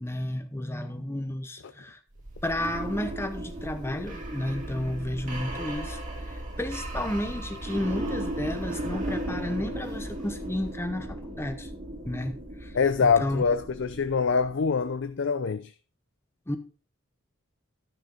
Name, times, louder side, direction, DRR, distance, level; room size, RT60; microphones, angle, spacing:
voice 1, 0.0-2.0 2.4-11.7 12.0-12.7 13.0-13.4 16.5-16.6, left 1 dB, 10° left, 0.9 m, -32 dB
sound 1, 2.2-14.9, right 1 dB, 35° right, 2.2 m, -36 dB
voice 2, 12.7-15.7, left 5 dB, 60° left, 0.5 m, -25 dB
12.5 x 6.6 x 3.9 m
head